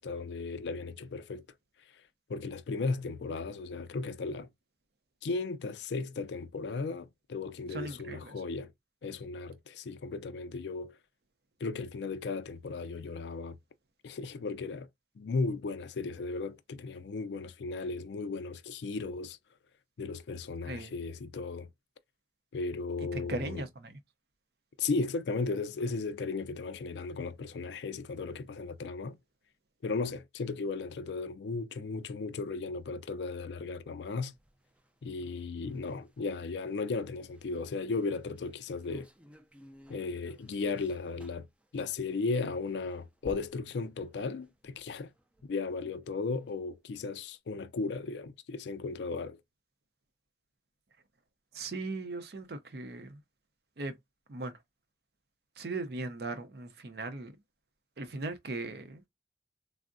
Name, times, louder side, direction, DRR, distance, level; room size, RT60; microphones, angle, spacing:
voice 1, 0.0-1.5 2.3-4.5 5.2-8.7 9.0-10.9 11.6-13.6 14.0-14.9 15.2-19.4 20.0-21.7 22.5-23.6 24.8-29.2 29.8-34.3 35.0-39.1 39.9-41.5 41.7-45.1 45.4-49.4, left 4 dB, 70° left, 0.4 m, -35 dB
voice 2, 7.7-8.4 20.7-20.9 23.0-24.0 51.5-53.2 53.8-54.0 54.3-54.6 55.6-57.4 58.0-59.0, right 2 dB, 60° right, 0.5 m, -38 dB
sound 1, 34.1-46.5 47.0-47.1 47.3-47.4, equal, 5° right, 0.3 m, -58 dB
3.5 x 2.0 x 2.5 m
head